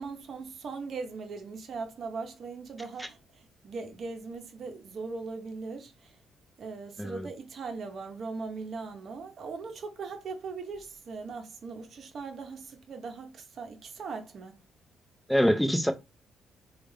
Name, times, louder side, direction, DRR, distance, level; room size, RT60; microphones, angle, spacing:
voice 1, 0.0-6.2 6.6-14.6, right 4 dB, 55° right, 0.8 m, -39 dB
voice 2, 15.3-15.9, equal, ahead, 0.6 m, -25 dB
3.3 x 2.4 x 3.2 m
cardioid pair, 90°, 0 cm